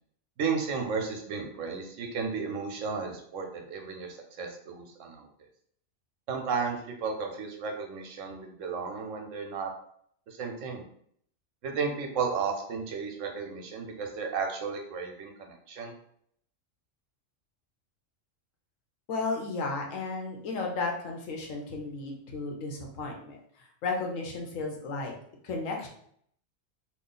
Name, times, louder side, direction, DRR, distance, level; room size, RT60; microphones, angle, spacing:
voice 1, 0.4-5.3 6.3-9.7 10.3-10.8 11.6-15.9, right 5 dB, 80° right, 3 dB, 1.1 m, -33 dB
voice 2, 19.1-25.1 25.4-25.9, left 3 dB, 85° left, 1 dB, 1.1 m, -34 dB
3.0 x 2.4 x 3.8 m, 0.66 s
omnidirectional pair, 1.3 m